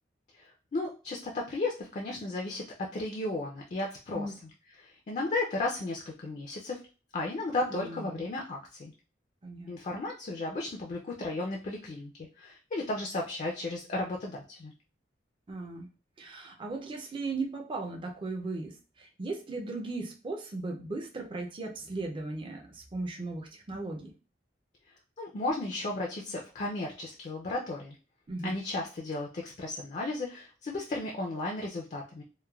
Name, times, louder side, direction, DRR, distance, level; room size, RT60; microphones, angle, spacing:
voice 1, 0.3-4.5 4.8-6.8 7.1-8.9 9.7-12.1 12.4-14.7 25.2-28.0 28.4-32.2, left 2 dB, 40° left, 0 dB, 0.4 m, -34 dB
voice 2, 7.7-8.2 9.4-9.7 15.5-15.9 16.2-24.1 28.3-28.6, right 3 dB, 30° right, 1 dB, 0.4 m, -37 dB
3.0 x 2.1 x 2.3 m, 0.34 s
head